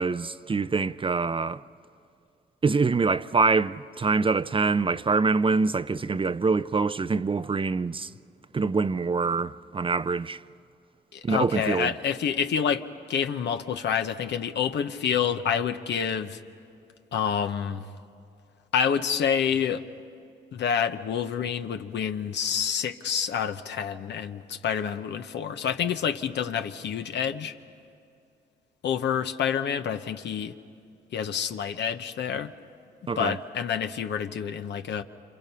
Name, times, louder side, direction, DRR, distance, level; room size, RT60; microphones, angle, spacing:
voice 1, 0.0-1.6 2.6-8.1 8.5-10.4 11.2-11.9 33.1-33.4, right 4 dB, 30° right, 0.5 m, -25 dB
voice 2, 11.1-12.8 13.1-16.4 17.1-17.9 18.7-19.8 20.5-27.5 28.8-30.6 31.1-32.5 33.2-35.0, left 7 dB, 70° left, 1.0 m, -28 dB
27.5 x 27.5 x 5.7 m
supercardioid pair, 60°, 18 cm